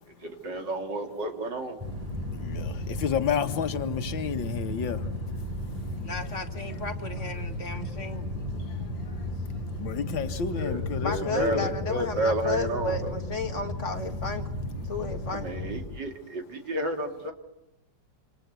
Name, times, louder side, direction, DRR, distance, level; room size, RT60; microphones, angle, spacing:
voice 1, 0.2-1.8 10.6-13.1 15.3-17.3, right 1 dB, 65° right, 3.4 m, -31 dB
sound 1, 1.8-15.9, left 1 dB, 20° right, 6.6 m, -34 dB
voice 2, 2.3-5.2 8.6-11.7, left 7 dB, 85° left, 2.1 m, -32 dB
voice 3, 6.0-8.3 11.0-14.5 14.8-15.5, left 3 dB, 40° left, 2.2 m, -33 dB
27.0 x 26.5 x 8.2 m
omnidirectional pair, 2.0 m